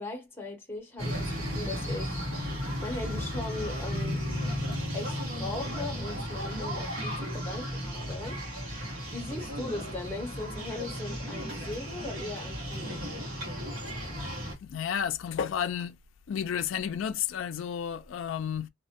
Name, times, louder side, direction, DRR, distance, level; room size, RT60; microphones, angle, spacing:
voice 1, 0.0-2.2 2.8-4.2 4.9-8.4 9.1-13.1, left 2 dB, 10° left, 0.9 m, -39 dB
sound 1, 1.0-14.5, equal, 75° right, 1.5 m, -34 dB
voice 2, 14.6-16.0 16.3-18.7, left 8 dB, 60° left, 0.3 m, -31 dB
2.8 x 2.1 x 2.8 m
head